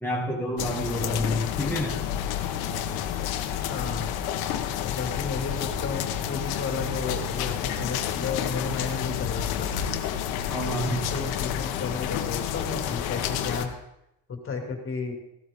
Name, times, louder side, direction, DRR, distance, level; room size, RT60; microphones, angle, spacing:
voice 1, 0.0-2.0 10.5-11.1, left 1 dB, 5° left, -3 dB, 1.9 m, -28 dB
sound 1, 0.6-13.7, left 9 dB, 75° left, 1.2 m, -30 dB
voice 2, 3.7-4.1 4.8-9.7 10.8-13.8 14.3-15.1, left 4 dB, 35° left, 2 dB, 2.7 m, -33 dB
15.5 x 12.5 x 3.7 m, 0.84 s
cardioid pair, 105°, 37 cm